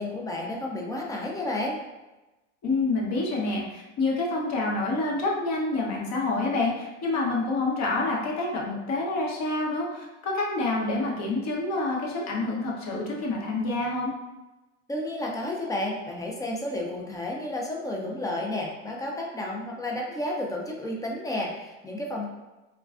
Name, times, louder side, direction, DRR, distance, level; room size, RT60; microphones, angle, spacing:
voice 1, 0.0-1.8 14.9-22.3, left 1 dB, 10° left, -1 dB, 0.4 m, -31 dB
voice 2, 2.6-14.1, left 2 dB, 45° left, -2 dB, 0.8 m, -27 dB
3.2 x 2.3 x 2.3 m, 1.1 s
supercardioid pair, 100°, 37 cm